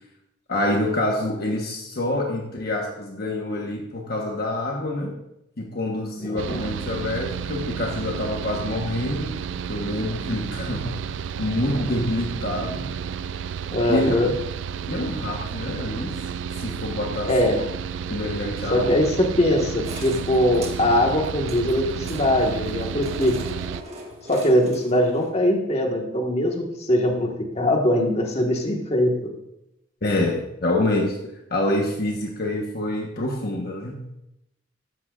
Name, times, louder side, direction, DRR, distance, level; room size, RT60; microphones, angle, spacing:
voice 1, 0.5-5.2 5.6-9.3 9.7-12.9 13.9-14.1 14.9-16.2 16.6-17.6 18.1-19.0 30.0-34.0, left 1 dB, 55° left, 0 dB, 1.2 m, -27 dB
Mechanical fan, 6.4-23.8, right 7 dB, 70° right, 0.3 m, -32 dB
voice 2, 13.7-14.3 17.3-17.6 18.7-23.4 24.3-27.3 27.5-29.1, left 1 dB, 35° left, 1 dB, 1.6 m, -21 dB
sound 1, 19.8-25.3, right 1 dB, 35° right, 1.7 m, -41 dB
14.5 x 11.5 x 2.5 m, 0.86 s
head